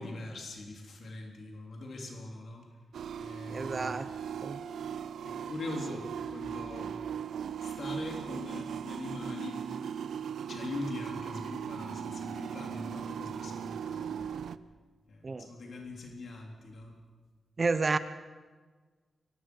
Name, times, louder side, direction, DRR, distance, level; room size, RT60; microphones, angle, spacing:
voice 1, 0.0-2.7 3.2-4.1 5.2-6.9 7.6-9.6 10.5-14.5 15.1-17.0, left 2 dB, 55° left, 1 dB, 3.5 m, -42 dB
sound 1, 2.9-14.6, right 8 dB, 90° right, 0.6 m, -38 dB
voice 2, 3.5-4.1 4.4-4.6 15.2-15.5 17.6-18.0, right 3 dB, 30° right, 12 dB, 0.8 m, -30 dB
24.0 x 18.5 x 6.4 m, 1.4 s
wide cardioid pair, 155°, 0 cm